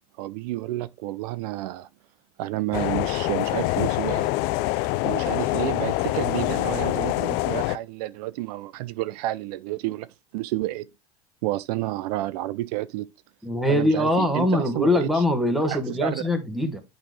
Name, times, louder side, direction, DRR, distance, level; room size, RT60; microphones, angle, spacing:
voice 1, 0.2-1.9 2.4-4.3 5.0-10.9 11.4-13.1 13.7-15.2 15.7-16.2, right 16 dB, 75° right, 0.5 m, -30 dB
sound 1, 2.7-7.8, left 19 dB, 55° left, 0.4 m, -25 dB
voice 2, 13.4-16.8, left 1 dB, ahead, 1.3 m, -23 dB
8.7 x 4.0 x 3.2 m
supercardioid pair, 120°, 20 cm